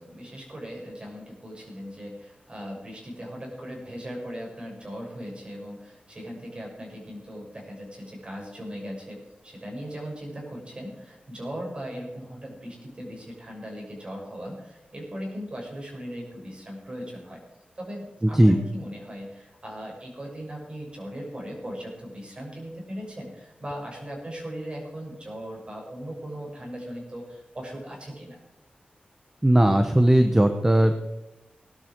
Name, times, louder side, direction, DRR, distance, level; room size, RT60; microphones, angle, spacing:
voice 1, 0.0-17.4 17.8-28.4, equal, 35° right, -1 dB, 6.5 m, -38 dB
voice 2, 18.2-18.6 29.4-31.0, right 1 dB, 15° right, 6 dB, 1.1 m, -18 dB
19.5 x 12.0 x 4.7 m, 0.95 s
wide cardioid pair, 100°, 3 cm